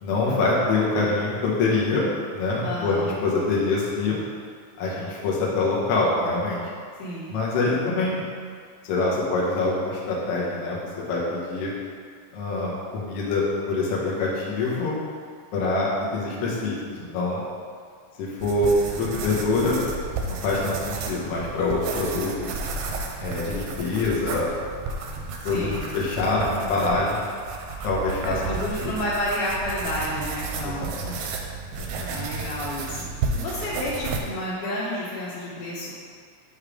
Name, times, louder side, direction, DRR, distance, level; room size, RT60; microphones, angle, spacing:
voice 1, 0.0-2.1 2.3-4.2 4.8-6.7 7.3-8.2 8.9-11.7 12.3-15.0 15.5-17.4 18.2-19.9 20.2-22.6 23.2-24.5 25.4-27.2 27.8-28.4 28.8-28.9 30.6-31.2 31.8-32.1, left 3 dB, 65° left, -5 dB, 1.7 m, -25 dB
voice 2, 2.6-3.2 7.0-7.4 25.4-26.0 28.3-30.9 32.1-33.0 33.3-35.9, left 1 dB, 90° left, -9 dB, 2.4 m, -30 dB
sound 1, 18.4-34.2, right 4 dB, 80° right, 1.9 m, -32 dB
6.8 x 3.1 x 4.9 m, 2.1 s
omnidirectional pair, 3.5 m